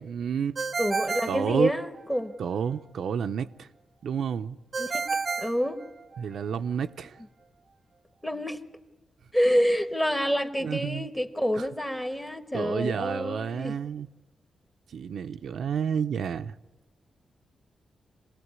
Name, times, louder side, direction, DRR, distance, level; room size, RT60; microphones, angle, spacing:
voice 1, 0.0-0.6 1.3-1.7 2.4-3.7 4.0-4.6 6.2-7.2 10.6-11.1 11.6-11.7 12.5-14.1 14.9-16.5, right 7 dB, 75° right, 0.7 m, -30 dB
Ringtone, 0.5-2.2 4.7-6.4, right 4 dB, 35° right, 0.8 m, -31 dB
voice 2, 0.8-2.3 4.8-5.0 5.4-5.8 8.2-8.6 9.3-13.7, equal, 5° left, 1.5 m, -27 dB
27.0 x 18.5 x 9.7 m
wide cardioid pair, 140°, 0 cm